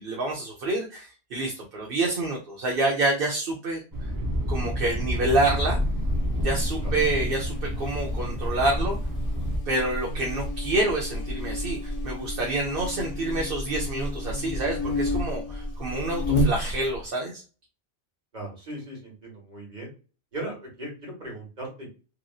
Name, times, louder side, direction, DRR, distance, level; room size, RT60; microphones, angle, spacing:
voice 1, 0.0-4.1 4.5-5.8 6.4-9.0 9.7-17.4, right 2 dB, 60° right, -1 dB, 0.9 m, -28 dB
Thunder, 3.9-9.6, equal, 25° right, 0.5 m, -29 dB
Buzz, 5.6-17.0, left 1 dB, 50° left, 1.0 m, -31 dB
voice 2, 18.3-19.9 20.3-21.9, right 1 dB, 45° right, -2 dB, 1.5 m, -38 dB
3.0 x 2.6 x 2.3 m, 0.34 s
omnidirectional pair, 1.1 m